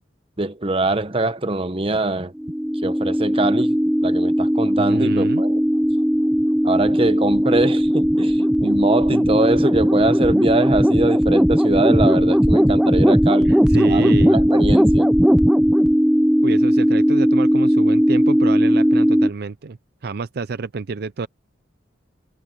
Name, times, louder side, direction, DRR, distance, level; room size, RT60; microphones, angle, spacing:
voice 1, 0.4-2.3 2.8-5.6 6.6-13.5 13.9-15.1, right 2 dB, 30° right, 1.1 m, -23 dB
sound 1, 2.4-19.3, equal, 5° right, 0.5 m, -17 dB
voice 2, 4.8-5.4 13.4-14.4 16.4-21.3, right 4 dB, 55° right, 0.5 m, -28 dB
head